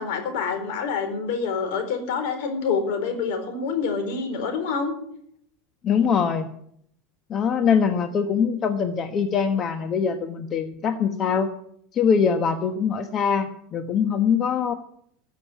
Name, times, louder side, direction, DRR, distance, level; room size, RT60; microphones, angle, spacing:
voice 1, 0.0-5.0, left 5 dB, 75° left, 7 dB, 4.3 m, -27 dB
voice 2, 5.8-6.5 7.3-11.5 11.9-14.7, left 6 dB, 35° left, 7 dB, 1.2 m, -23 dB
14.0 x 6.8 x 9.9 m, 0.68 s
supercardioid pair, 120°, 0 cm